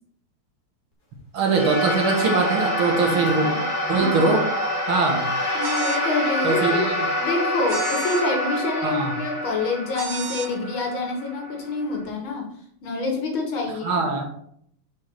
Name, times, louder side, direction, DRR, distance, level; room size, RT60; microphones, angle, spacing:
voice 1, 1.3-3.5 3.9-4.4 4.9-5.2 6.4-7.1 8.8-9.1 13.8-14.3, right 4 dB, 70° right, 2 dB, 2.3 m, -22 dB
sound 1, 1.4-12.0, equal, 25° left, 1.6 m, -26 dB
voice 2, 3.1-3.6 4.0-4.4 5.5-6.9 7.2-12.5 12.8-14.0, left 3 dB, 65° left, 1 dB, 2.5 m, -27 dB
sound 2, 5.6-6.0 7.7-8.2 9.9-10.5, right 5 dB, 45° right, 1.7 m, -33 dB
7.7 x 5.1 x 4.4 m, 0.68 s
omnidirectional pair, 2.4 m